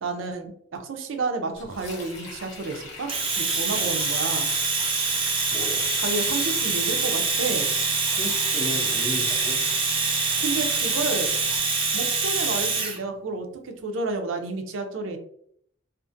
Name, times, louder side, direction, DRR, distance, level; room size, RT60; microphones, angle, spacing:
voice 1, 0.0-3.1 3.4-4.5 6.0-7.7 10.4-11.3 11.9-15.2, right 3 dB, 90° right, 5 dB, 0.5 m, -30 dB
Sink (filling or washing), 1.5-11.6, left 3 dB, 75° left, 0.8 m, -43 dB
Domestic sounds home sounds, 3.1-13.0, right 4 dB, 30° right, 0.5 m, -25 dB
voice 2, 5.5-5.8 8.1-9.6, left 1 dB, 20° left, -1 dB, 0.6 m, -34 dB
2.5 x 2.5 x 2.5 m, 0.66 s
head